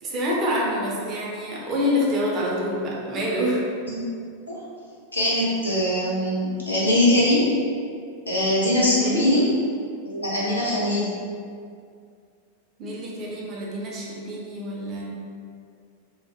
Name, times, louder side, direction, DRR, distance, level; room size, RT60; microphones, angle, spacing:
voice 1, 0.0-3.6 8.8-9.2 12.8-15.2, left 1 dB, 30° right, -4 dB, 0.5 m, -27 dB
voice 2, 5.1-7.5 8.3-9.4 10.0-11.1, left 1 dB, 85° left, -8 dB, 0.7 m, -22 dB
2.3 x 2.2 x 2.6 m, 2.2 s
figure-of-eight pair, 90°, 0 cm